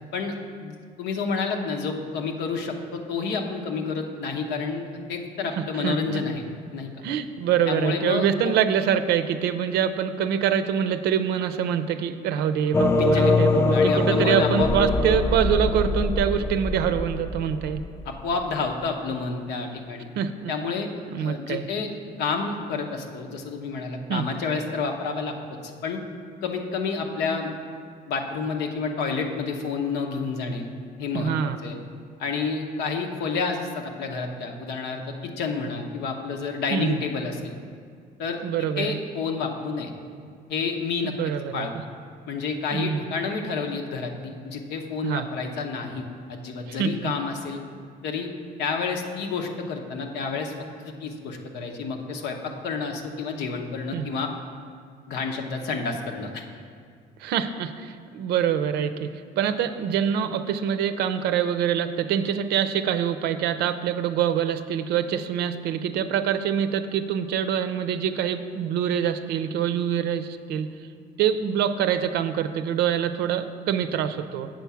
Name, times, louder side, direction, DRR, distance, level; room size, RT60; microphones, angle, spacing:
voice 1, 0.1-6.4 6.7-6.9 7.7-8.6 12.9-14.8 18.0-20.1 20.5-20.9 21.2-21.9 22.2-25.3 25.6-26.0 26.4-27.5 28.1-30.7 31.0-31.3 31.6-31.8 32.2-37.6 38.2-38.4 38.8-39.9 40.5-41.7 42.3-47.6 48.0-48.3 48.6-50.5 50.8-54.3 55.1-56.4, left 4 dB, 80° left, 3 dB, 1.0 m, -29 dB
voice 2, 5.6-6.2 7.0-17.8 20.2-20.5 21.1-21.6 24.1-24.3 31.1-31.6 36.7-37.0 38.4-39.0 41.0-41.7 42.7-43.0 45.0-45.2 46.7-47.1 53.9-54.1 57.2-59.1 59.4-70.7 71.2-74.5, right 8 dB, 75° right, 10 dB, 0.5 m, -25 dB
sound 1, 12.7-18.4, left 3 dB, 15° left, 0.3 m, -23 dB
7.8 x 4.6 x 7.0 m, 2.1 s
cardioid pair, 110°, 17 cm